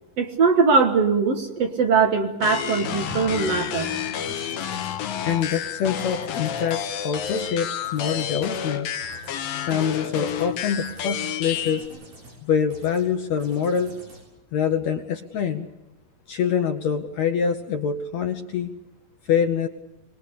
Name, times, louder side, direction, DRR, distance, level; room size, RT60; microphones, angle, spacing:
voice 1, 0.2-3.9 4.2-4.3, right 5 dB, 55° right, 5 dB, 2.1 m, -21 dB
sound 1, 2.4-11.9, left 9 dB, 90° left, 3.0 m, -30 dB
sound 2, 2.7-5.0 5.3-5.6 6.0-6.8 7.1-7.5 7.8-8.7 9.0-9.4 9.7-10.5 10.9-11.2 11.5-12.4 12.7-13.1 13.4-14.2, right 1 dB, 85° right, 9.3 m, -43 dB
voice 2, 5.3-8.9 9.7-11.9 12.4-14.0 14.5-15.7 16.3-18.7 19.3-19.7, left 7 dB, 65° left, 6 dB, 1.9 m, -25 dB
24.0 x 20.5 x 8.5 m, 0.91 s
omnidirectional pair, 4.0 m